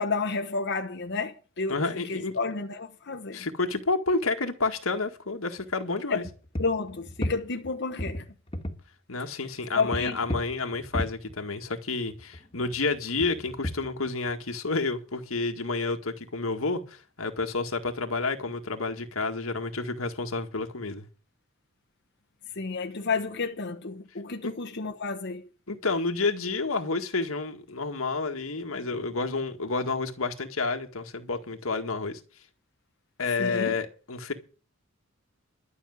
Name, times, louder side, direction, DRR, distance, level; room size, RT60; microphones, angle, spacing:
voice 1, 0.0-1.8 2.0-3.5 6.1-6.3 6.6-8.2 9.7-10.2 22.5-25.5 33.4-33.8, left 4 dB, 55° left, 1.1 m, -31 dB
voice 2, 1.7-2.4 3.3-6.2 9.1-21.1 24.4-24.5 25.7-32.2 33.2-34.3, left 3 dB, 85° left, 1.8 m, -30 dB
sound 1, 5.6-5.7 6.2-7.7 8.0-8.8 9.9-11.8 12.1-14.3, equal, 25° left, 1.8 m, -35 dB
12.0 x 6.4 x 9.4 m
head